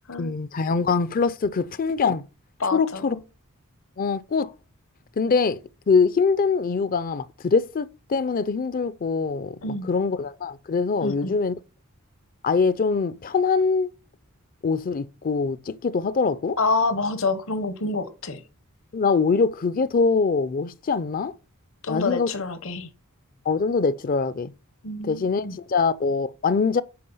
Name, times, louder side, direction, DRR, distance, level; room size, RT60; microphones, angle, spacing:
voice 1, 0.2-2.2 2.7-3.2 4.0-4.5 5.2-5.6 5.9-11.5 12.4-13.9 14.6-16.6 18.9-21.3 21.9-22.3 22.8-22.9 23.5-24.5 25.0-26.8, left 4 dB, 40° left, 0.5 m, -23 dB
voice 2, 2.6-3.2 9.6-9.9 11.0-11.3 16.6-18.4 21.8-22.9 24.8-25.6, left 3 dB, 65° left, 1.2 m, -27 dB
8.6 x 4.7 x 5.4 m
head